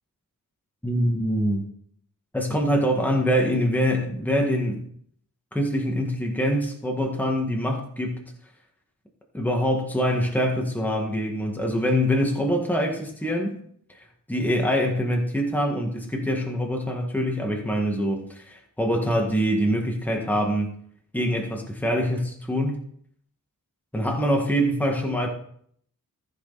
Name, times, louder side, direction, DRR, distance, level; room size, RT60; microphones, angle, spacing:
voice 1, 0.8-1.7 2.3-4.8 5.5-8.2 9.3-13.6 13.9-20.7 21.1-22.8 23.9-25.3, equal, 5° left, 1 dB, 1.9 m, -24 dB
14.5 x 6.5 x 4.2 m, 0.65 s
wide cardioid pair, 105°, 34 cm